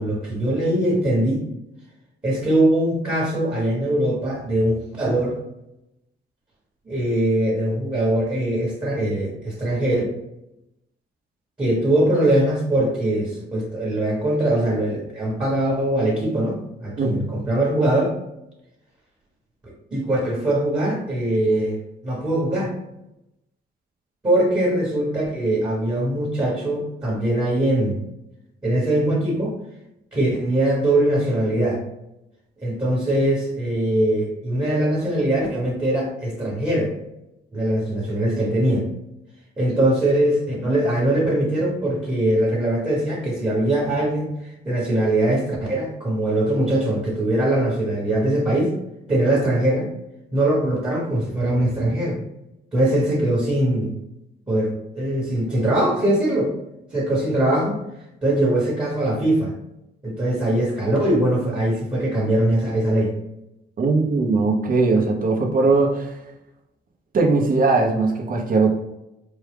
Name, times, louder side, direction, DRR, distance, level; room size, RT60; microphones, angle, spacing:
voice 1, 0.0-1.5 2.2-5.4 6.9-10.0 11.6-18.1 19.6-21.8 22.0-22.7 24.2-28.0 28.6-29.6 30.1-31.8 32.6-36.9 37.5-38.9 39.6-48.7 49.1-49.9 50.3-52.2 52.7-53.9 54.5-56.5 56.9-57.8 58.2-59.5 60.0-63.1, right 1 dB, 20° right, -4 dB, 1.3 m, -21 dB
voice 2, 17.0-17.3 63.8-66.2 67.1-68.7, right 3 dB, 45° right, 2 dB, 0.9 m, -19 dB
4.4 x 2.3 x 3.5 m, 0.89 s
cardioid pair, 90°, 20 cm